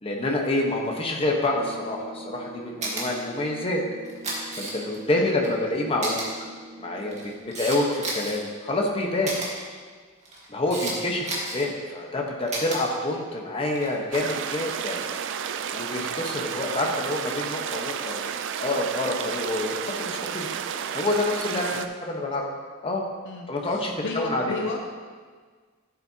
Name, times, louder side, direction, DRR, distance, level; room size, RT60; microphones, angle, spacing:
voice 1, 0.0-3.8 4.5-6.2 6.8-9.3 10.5-15.0 15.7-18.2 18.6-20.5 20.9-21.8 22.1-22.4 22.8-23.0 23.5-24.6, left 2 dB, 25° left, 0 dB, 1.1 m, -27 dB
sound 1, 1.5-7.4, right 1 dB, 80° right, 1.0 m, -43 dB
Camera, 2.8-3.0 4.0-5.0 5.4-5.5 6.0-6.3 7.0-8.4 9.2-9.5 10.2-10.9 11.2-11.7 12.5-12.8 13.7-13.9, right 2 dB, 35° right, 1.8 m, -31 dB
sound 2, 14.1-21.9, right 7 dB, 60° right, 0.4 m, -31 dB
voice 2, 21.5-21.9 23.3-24.8, left 3 dB, 60° left, 2 dB, 0.6 m, -33 dB
12.0 x 7.4 x 2.8 m, 1.5 s
head